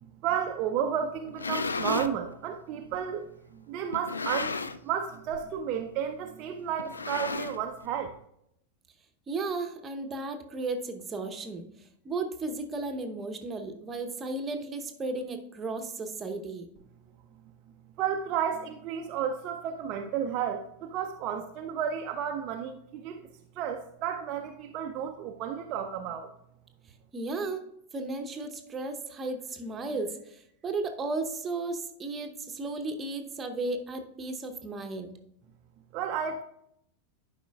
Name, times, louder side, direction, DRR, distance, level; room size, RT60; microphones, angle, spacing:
voice 1, 0.0-8.2 18.0-23.3 23.5-26.3 35.9-36.4, right 8 dB, 40° right, 4 dB, 0.5 m, -32 dB
sound 1, 1.2-2.2 2.9-3.0 3.9-4.9 5.2-5.5 5.8-5.9 6.8-7.9, left 3 dB, 75° left, 0.3 m, -33 dB
voice 2, 9.3-16.6 27.1-27.6 27.9-35.1, right 3 dB, 20° right, 5 dB, 0.8 m, -34 dB
11.0 x 5.0 x 2.3 m, 0.76 s
figure-of-eight pair, 90°, 0 cm